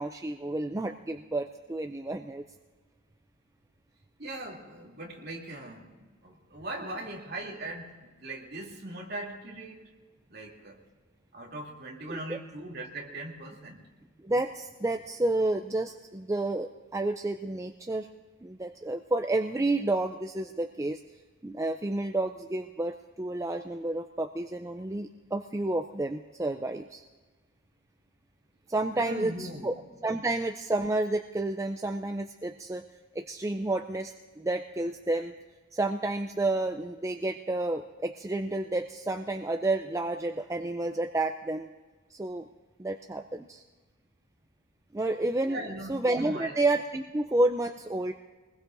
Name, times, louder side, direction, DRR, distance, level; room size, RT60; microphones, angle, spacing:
voice 1, 0.0-2.4 12.1-12.4 14.2-18.1 18.4-21.0 21.4-27.0 28.7-29.7 30.0-32.9 33.1-35.3 35.7-41.7 42.1-42.5 42.8-43.6 44.9-45.6 45.9-48.1, right 2 dB, 15° right, 5 dB, 0.4 m, -30 dB
voice 2, 4.2-9.9 10.3-10.8 11.3-13.8 28.9-29.7 45.4-45.9 46.2-46.5, right 1 dB, 50° right, -2 dB, 2.8 m, -40 dB
23.5 x 20.5 x 2.6 m, 1.3 s
head